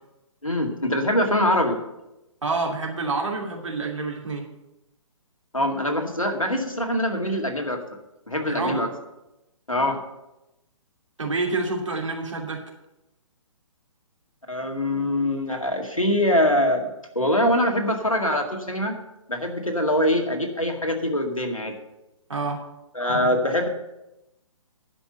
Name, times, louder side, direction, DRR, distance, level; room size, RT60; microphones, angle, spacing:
voice 1, 0.4-1.8 5.5-7.8 8.3-8.9 9.7-10.0 14.5-16.9 17.2-18.9 19.3-21.8 22.9-23.7, left 1 dB, 90° left, 4 dB, 2.0 m, -23 dB
voice 2, 2.4-4.5 8.5-8.8 11.2-12.6 22.3-22.6, right 3 dB, 70° right, 1 dB, 2.7 m, -28 dB
11.0 x 5.5 x 7.8 m, 0.94 s
figure-of-eight pair, 130°, 17 cm